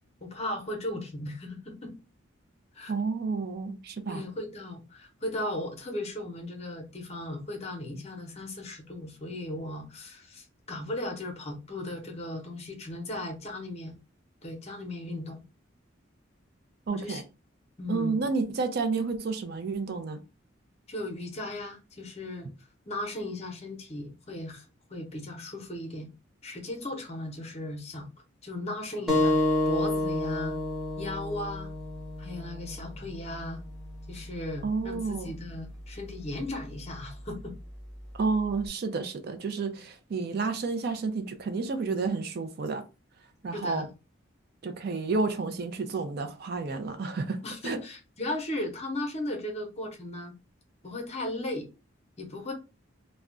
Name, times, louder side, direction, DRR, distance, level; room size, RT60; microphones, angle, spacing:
voice 1, 0.2-1.9 2.7-2.9 4.1-13.9 14.4-15.4 16.9-17.2 17.8-18.2 20.9-22.5 22.9-24.6 24.9-26.1 26.4-28.1 28.4-29.4 29.7-30.6 31.0-31.7 32.2-33.6 34.1-37.5 43.5-43.9 47.4-50.3 50.8-51.7 52.2-52.5, left 1 dB, 30° left, 0.7 m, -36 dB
voice 2, 2.9-4.2 16.9-17.2 17.9-20.2 34.6-35.3 38.1-42.8 43.4-43.9 44.6-47.8, right 4 dB, 50° right, 0.4 m, -30 dB
sound 1, 29.1-34.2, left 1 dB, 5° right, 0.9 m, -29 dB
2.3 x 2.1 x 3.6 m
head